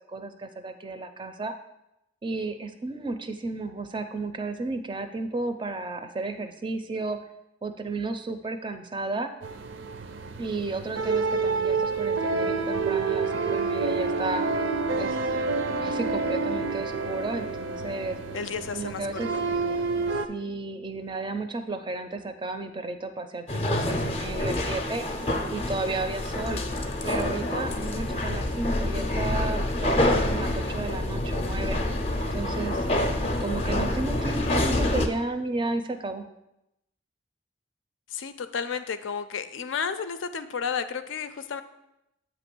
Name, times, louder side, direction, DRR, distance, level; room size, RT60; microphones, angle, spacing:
voice 1, 0.1-1.5 2.2-7.2 7.6-9.3 10.4-14.4 15.0-15.4 15.8-18.2 18.7-19.3 20.1-25.0 25.5-26.6 27.0-31.8 32.3-33.1 33.4-36.3, right 3 dB, 25° right, 8 dB, 0.4 m, -33 dB
sound 1, 9.4-20.3, right 4 dB, 80° right, 0.5 m, -28 dB
voice 2, 18.3-19.0 19.3-19.4 38.1-41.6, left 6 dB, 85° left, 10 dB, 0.5 m, -32 dB
sound 2, 23.5-35.1, left 1 dB, 30° left, 0.5 m, -27 dB
7.9 x 3.0 x 6.0 m, 0.88 s
head